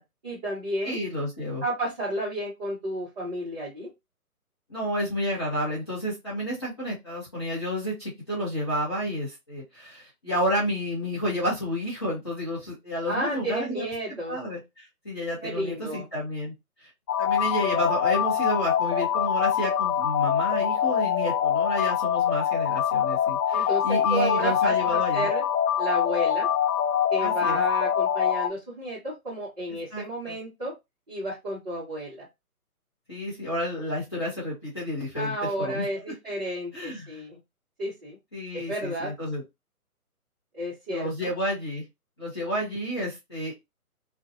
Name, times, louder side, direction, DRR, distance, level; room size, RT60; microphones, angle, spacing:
voice 1, 0.2-1.0 1.6-3.9 13.1-14.4 15.4-16.1 23.5-25.4 25.8-26.5 27.1-30.7 31.1-32.3 35.1-37.4 37.8-38.2 38.5-39.1 40.5-41.3, right 1 dB, 25° right, -8 dB, 1.0 m, -32 dB
voice 2, 0.8-1.6 4.7-13.8 14.3-16.5 16.8-16.9 17.2-25.3 27.2-27.6 29.9-30.4 33.1-35.9 36.7-37.2 38.3-39.4 40.9-41.8 42.2-43.5, equal, 20° left, -9 dB, 0.7 m, -30 dB
sound 1, 17.1-28.5, left 9 dB, 85° left, 0.5 m, -24 dB
2.6 x 2.2 x 2.6 m, 0.21 s
hypercardioid pair, 165°, 45 cm